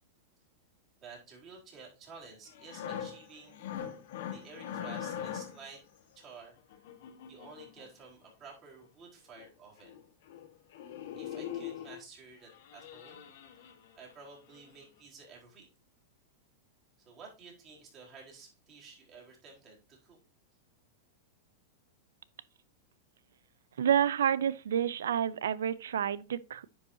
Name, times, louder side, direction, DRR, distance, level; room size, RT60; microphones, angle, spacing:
voice 1, 1.0-3.6 4.3-5.8 6.2-6.5 7.3-9.9 11.2-13.3 13.6-15.7 17.0-20.2, right 4 dB, 35° right, 4.2 m, -52 dB
sound 1, 2.5-5.7 6.7-7.9 9.0-9.1 9.4-9.5 9.8-10.0 10.3-10.5 10.7-12.0 12.5-14.1 14.5-14.7, left 9 dB, 70° left, 1.5 m, -42 dB
voice 2, 23.8-26.6, right 9 dB, 90° right, 0.5 m, -29 dB
10.0 x 5.6 x 2.7 m
supercardioid pair, 135°, 0 cm